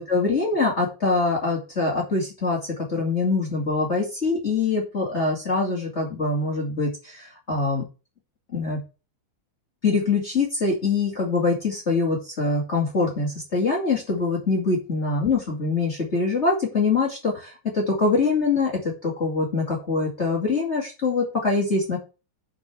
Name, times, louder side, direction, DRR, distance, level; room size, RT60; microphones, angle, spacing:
voice 1, 0.0-7.9 8.5-8.8 9.8-22.0, left 3 dB, 35° left, -2 dB, 2.8 m, -24 dB
8.3 x 5.0 x 7.6 m, 0.31 s
omnidirectional pair, 2.2 m